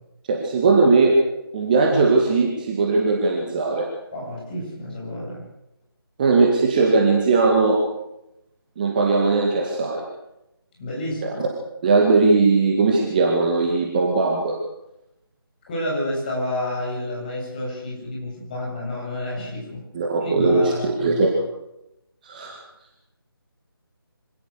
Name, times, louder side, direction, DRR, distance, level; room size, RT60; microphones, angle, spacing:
voice 1, 0.3-1.1 1.5-3.9 6.2-7.8 8.8-10.0 11.4-11.5 11.8-14.6 19.9-20.7 21.0-21.3 22.2-22.6, right 3 dB, 20° right, 0 dB, 2.2 m, -19 dB
voice 2, 4.1-5.4 10.8-11.4 15.7-19.8 20.2-21.2, left 1 dB, 20° left, -3 dB, 7.8 m, -30 dB
25.5 x 18.0 x 6.8 m, 0.88 s
figure-of-eight pair, 155°, 13 cm